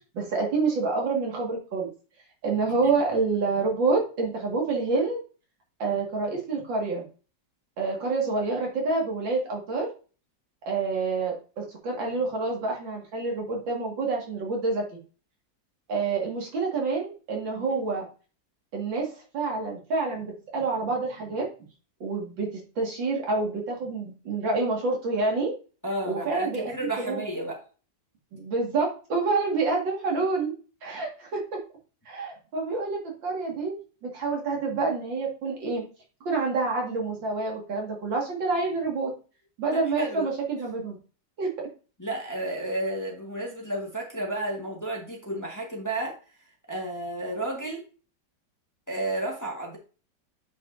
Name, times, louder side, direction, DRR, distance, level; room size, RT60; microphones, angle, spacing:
voice 1, 0.1-1.9 2.4-5.2 5.8-7.0 7.8-9.9 10.7-14.8 15.9-18.1 18.7-19.1 19.3-21.5 22.0-25.5 26.0-27.2 28.3-30.5 30.8-31.4 32.1-33.7 34.0-35.8 36.2-39.1 39.6-41.0 41.4-41.7, right 3 dB, 80° right, 0 dB, 2.7 m, -27 dB
voice 2, 25.8-27.6 39.7-40.3 42.0-46.2 46.7-47.8 48.9-49.8, right 1 dB, 10° left, -1 dB, 1.4 m, -32 dB
8.5 x 5.2 x 2.6 m, 0.36 s
omnidirectional pair, 2.0 m